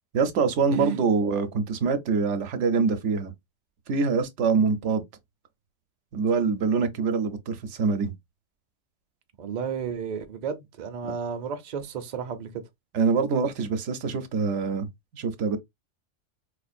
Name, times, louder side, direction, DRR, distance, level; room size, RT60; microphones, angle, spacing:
voice 1, 0.1-3.3 3.9-5.0 6.1-8.1 12.9-14.9 15.1-15.6, right 5 dB, 75° right, 1.0 m, -24 dB
voice 2, 9.4-12.5, right 7 dB, 45° right, 0.6 m, -32 dB
4.3 x 2.4 x 2.5 m
omnidirectional pair, 1.2 m